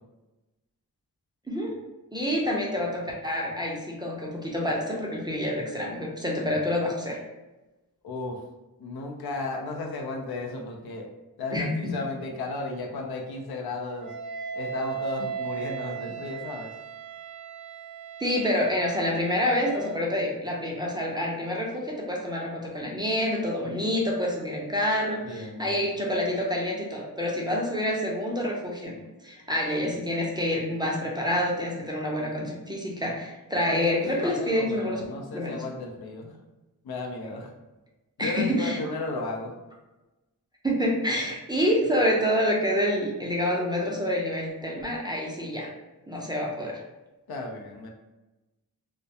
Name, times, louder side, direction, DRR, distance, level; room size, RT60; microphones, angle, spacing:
voice 1, 1.5-1.8 2.1-7.2 11.5-11.9 18.2-28.9 29.2-35.0 35.3-35.5 38.2-38.8 40.6-45.7 46.1-46.8, left 1 dB, 10° right, -3 dB, 0.4 m, -27 dB
voice 2, 8.0-8.4 8.8-11.1 11.4-14.1 14.5-16.7 25.2-25.9 33.6-36.3 36.8-37.6 38.2-39.5 47.3-47.9, left 2 dB, 75° left, 1 dB, 0.5 m, -34 dB
Wind instrument woodwind instrument, 14.0-20.2, right 7 dB, 65° right, 0.5 m, -37 dB
2.3 x 2.1 x 2.7 m, 1.1 s
wide cardioid pair, 100°, 38 cm